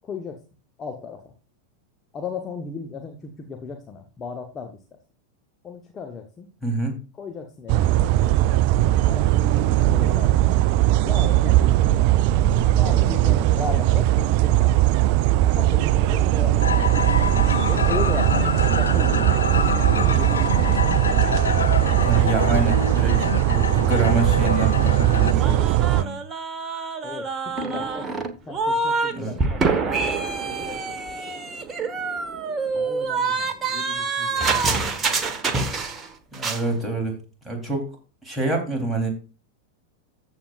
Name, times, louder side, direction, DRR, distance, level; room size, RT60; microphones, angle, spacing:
voice 1, 0.0-0.4 0.8-1.3 2.1-4.8 5.6-6.5 7.2-8.1 9.1-10.6 11.0-11.6 12.7-14.7 15.5-16.6 17.7-19.4 19.7-21.3 27.0-31.0 32.7-35.3, left 5 dB, 25° left, 4 dB, 1.3 m, -36 dB
voice 2, 6.6-7.0 22.0-23.2 23.4-26.2 29.1-29.4 36.3-37.2 37.4-37.9 38.2-39.1, right 3 dB, 5° right, 0 dB, 3.6 m, -26 dB
sound 1, 7.7-26.0, right 14 dB, 45° right, 0.4 m, -19 dB
sound 2, 16.6-25.3, left 6 dB, 70° left, 0.4 m, -27 dB
sound 3, 25.4-29.1 29.4-36.1 36.3-36.6, right 4 dB, 20° right, 1.3 m, -26 dB
14.5 x 7.3 x 2.5 m, 0.32 s
figure-of-eight pair, 90°, 0 cm